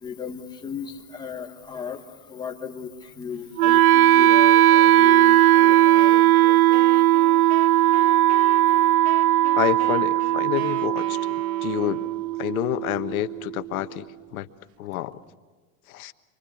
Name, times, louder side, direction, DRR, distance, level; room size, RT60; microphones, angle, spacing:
voice 1, 0.0-2.0 2.3-6.9, left 6 dB, 10° left, 2 dB, 1.4 m, -36 dB
Wind instrument woodwind instrument, 3.6-13.6, right 14 dB, 85° right, 0.8 m, -18 dB
Wind instrument woodwind instrument 2, 5.5-12.4, right 12 dB, 50° right, 0.8 m, -41 dB
voice 2, 9.6-11.2 11.6-12.0 12.4-14.0 14.3-14.5 14.8-15.2 15.9-16.1, left 15 dB, 80° left, 10 dB, 1.4 m, -28 dB
26.5 x 24.0 x 7.2 m, 1.4 s
supercardioid pair, 170°, 42 cm